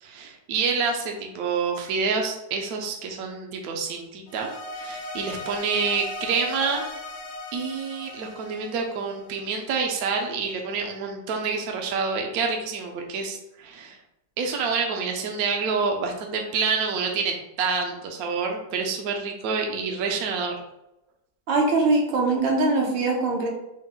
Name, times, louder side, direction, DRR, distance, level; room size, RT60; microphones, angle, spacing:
voice 1, 0.0-4.5 4.8-6.8 7.5-14.0 14.4-20.6, right 5 dB, 65° right, 2 dB, 1.0 m, -27 dB
sound 1, 4.3-9.6, left 1 dB, 70° left, 1.1 m, -37 dB
voice 2, 21.5-23.5, right 3 dB, 80° right, -1 dB, 1.5 m, -22 dB
4.2 x 2.1 x 3.6 m, 0.88 s
omnidirectional pair, 1.9 m